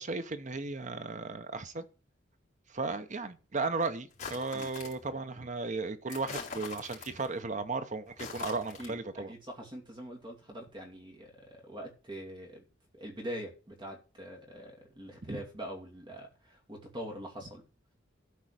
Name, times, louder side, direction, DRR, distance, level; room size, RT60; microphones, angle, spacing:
voice 1, 0.0-1.9 2.7-9.3 15.3-15.4, right 3 dB, 40° right, 1.0 m, -35 dB
sound 1, 4.1-5.1 6.1-7.3 8.1-8.9, left 5 dB, 40° left, 4.2 m, -43 dB
voice 2, 8.8-12.6 12.9-17.6, equal, 25° right, 2.7 m, -44 dB
13.0 x 4.8 x 6.5 m
head